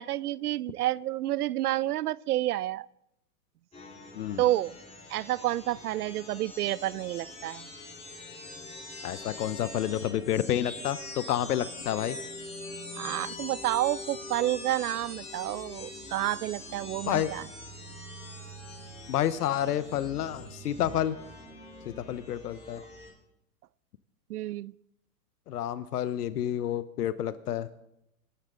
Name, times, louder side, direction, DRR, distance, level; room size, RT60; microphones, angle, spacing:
voice 1, 0.0-2.9 4.4-4.8 5.1-7.7 13.0-17.5 24.3-24.7, right 14 dB, 75° right, 23 dB, 0.6 m, -30 dB
sound 1, 3.7-23.1, left 2 dB, 15° left, 3.9 m, -43 dB
voice 2, 9.0-12.2 17.1-17.3 19.1-21.2 21.9-22.8 25.5-27.7, left 11 dB, 80° left, 15 dB, 1.0 m, -29 dB
26.0 x 12.5 x 3.8 m, 0.83 s
hypercardioid pair, 125°, 46 cm